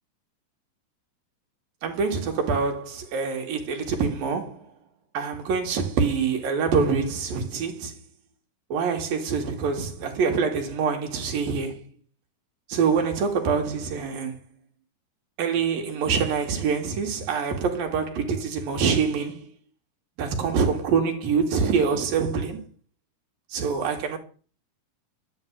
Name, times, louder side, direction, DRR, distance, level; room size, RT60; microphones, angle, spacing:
voice 1, 1.8-4.6 5.1-7.9 8.7-11.8 12.7-14.4 15.4-19.5 20.2-22.6 23.5-24.2, right 5 dB, 85° right, 4.2 m, -25 dB
12.0 x 7.7 x 9.1 m
omnidirectional pair, 3.9 m